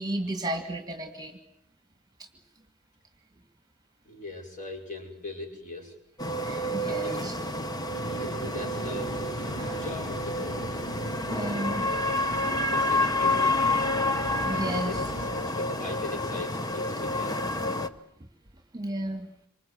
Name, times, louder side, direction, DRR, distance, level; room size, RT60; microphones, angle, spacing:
voice 1, 0.0-1.4 2.2-2.3 6.3-7.4 9.6-9.8 11.3-11.9 14.4-14.9 18.7-19.3, right 1 dB, 15° right, 6 dB, 2.0 m, -33 dB
voice 2, 4.0-6.0 6.8-7.4 8.2-9.2 9.8-10.7 12.7-13.6 14.5-17.4, left 3 dB, 35° left, 2 dB, 5.8 m, -40 dB
sound 1, 6.2-17.9, left 2 dB, 15° left, 1.1 m, -29 dB
sound 2, 7.9-15.3, right 2 dB, 60° left, 6.4 m, -41 dB
27.5 x 25.5 x 7.8 m, 0.70 s
head